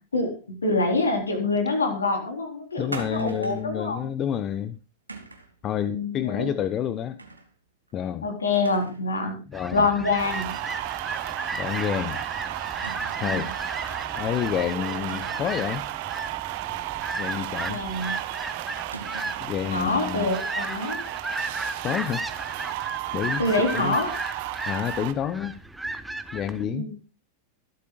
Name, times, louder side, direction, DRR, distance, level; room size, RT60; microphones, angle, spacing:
voice 1, 0.6-4.1 5.7-6.5 8.2-9.4 9.7-10.5 13.2-13.4 17.7-18.1 19.7-21.0 23.4-24.1 26.6-26.9, left 3 dB, 75° left, 5 dB, 3.8 m, -26 dB
voice 2, 2.8-4.8 5.6-7.2 7.9-8.3 9.5-9.9 11.5-12.2 13.2-13.5 14.1-15.9 17.2-17.8 19.4-20.3 21.8-22.2 23.1-24.0 24.6-25.5 26.3-26.9, left 9 dB, 30° left, 14 dB, 0.8 m, -29 dB
sound 1, 2.9-3.7 5.1-5.6 7.2-7.5 7.9-8.0 8.5-9.1 9.4-9.5 11.1-11.3 11.7-11.8 12.8-13.4 15.0-15.6 17.4-18.0 18.9-19.6, right 3 dB, 85° right, 2.1 m, -41 dB
sound 2, 9.5-26.6, right 2 dB, 5° right, 1.2 m, -35 dB
sound 3, 10.2-25.1, right 18 dB, 50° right, 1.2 m, -33 dB
25.0 x 8.5 x 2.4 m, 0.30 s
figure-of-eight pair, 90°, 0 cm